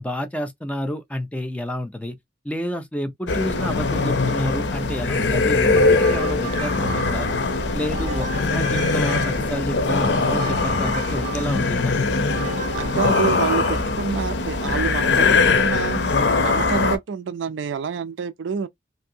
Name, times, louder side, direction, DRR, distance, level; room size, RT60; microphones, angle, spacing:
voice 1, 0.0-2.2 2.4-7.3 7.7-12.0, equal, 5° left, 0.4 m, -30 dB
sound 1, 3.3-17.0, left 3 dB, 75° left, 0.6 m, -21 dB
sound 2, 5.8-7.4 7.9-9.6 10.1-11.8 12.3-14.0, right 6 dB, 40° right, 0.5 m, -35 dB
voice 2, 12.8-16.0 16.4-18.7, right 6 dB, 90° right, 0.4 m, -27 dB
3.2 x 2.6 x 2.7 m
head